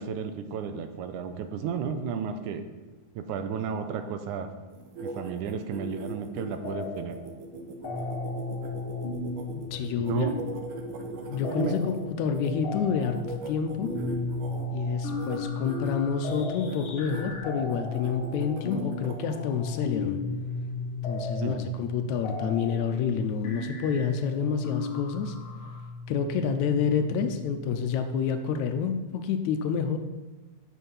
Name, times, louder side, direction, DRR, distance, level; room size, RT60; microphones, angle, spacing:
voice 1, 0.0-2.6 3.2-4.5 5.0-7.2 10.0-10.3 11.5-11.7 21.4-21.6, right 6 dB, 80° right, 8 dB, 2.2 m, -32 dB
sound 1, 4.7-12.5 13.0-14.7 15.1-15.4 15.6-15.9 16.3-17.2 17.7-19.4, right 2 dB, 65° right, 1.3 m, -39 dB
sound 2, 6.6-7.3 7.5-25.8, left 2 dB, 50° left, 1.8 m, -36 dB
sound 3, 8.1-27.7, left 3 dB, 25° left, 2.1 m, -44 dB
voice 2, 9.5-10.3 11.3-13.9 14.7-20.2 21.0-25.4 26.1-30.0, left 6 dB, 80° left, 7 dB, 1.9 m, -28 dB
8.2 x 7.2 x 5.6 m, 1.2 s
omnidirectional pair, 3.5 m